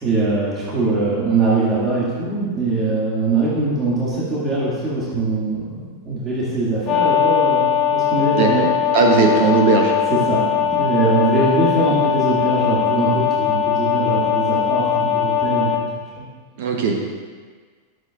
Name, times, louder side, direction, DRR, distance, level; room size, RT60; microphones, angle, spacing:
voice 1, 0.0-8.7 10.1-15.7 16.1-16.2, right 3 dB, 20° right, -8 dB, 2.4 m, -22 dB
sound 1, 6.9-15.8, left 8 dB, 35° left, 1.0 m, -20 dB
voice 2, 8.4-8.7 8.9-9.9 16.6-17.0, right 4 dB, 50° right, 1 dB, 1.1 m, -17 dB
12.5 x 7.8 x 2.5 m, 1.5 s
figure-of-eight pair, 90°, 0 cm